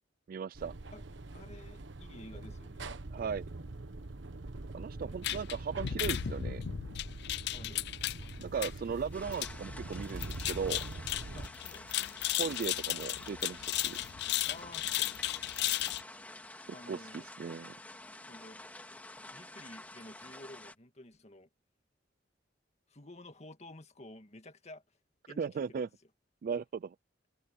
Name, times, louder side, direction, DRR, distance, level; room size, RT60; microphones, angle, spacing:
voice 1, 0.3-0.7 3.1-3.5 4.7-6.6 8.4-10.8 12.4-14.0 16.9-17.7 25.4-25.9 26.4-26.9, right 6 dB, 50° right, 0.3 m, -37 dB
sound 1, 0.5-11.5, right 2 dB, 70° right, 1.1 m, -44 dB
voice 2, 1.3-2.9 5.0-5.2 7.5-7.9 11.3-11.9 14.5-15.4 16.7-17.3 18.2-18.6 19.3-21.5 22.9-24.8 25.3-25.9, left 1 dB, 35° left, 1.9 m, -52 dB
sound 2, 5.2-16.0, left 13 dB, 60° left, 0.4 m, -36 dB
sound 3, 9.1-20.7, left 1 dB, 10° left, 2.0 m, -49 dB
head